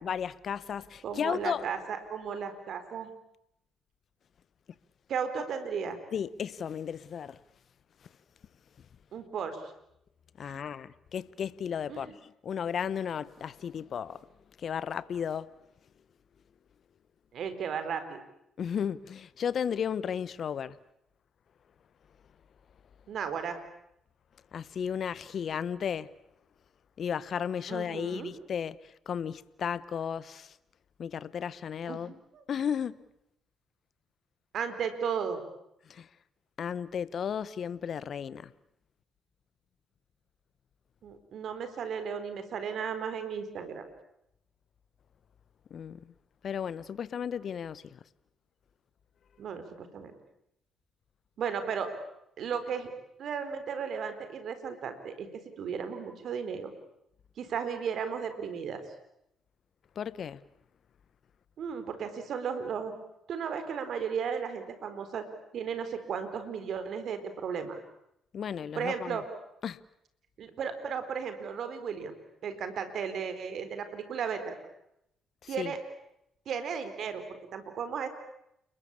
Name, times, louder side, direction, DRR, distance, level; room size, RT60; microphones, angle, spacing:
voice 1, 0.0-1.6 6.1-7.4 10.4-14.3 14.6-15.5 18.6-20.8 24.5-26.1 27.0-30.6 31.0-32.1 32.5-33.0 35.9-36.1 36.6-38.5 45.7-46.1 46.4-48.0 59.9-60.4 68.3-69.2 69.6-69.8 75.4-75.7, left 8 dB, 55° left, 1.0 m, -34 dB
voice 2, 1.0-3.1 5.1-6.0 9.1-9.6 10.4-10.6 11.9-12.1 17.3-18.2 23.1-23.6 27.7-28.3 31.9-32.4 34.5-35.4 41.0-43.9 49.4-50.1 51.4-51.9 52.4-52.9 53.2-55.3 55.6-56.7 57.4-58.8 61.6-62.9 63.3-65.3 65.5-67.8 68.8-69.3 70.4-72.1 72.4-74.6 75.5-75.8 76.5-78.1, right 6 dB, 60° right, 4.4 m, -35 dB
30.0 x 21.5 x 8.6 m
hypercardioid pair, 50°, 0 cm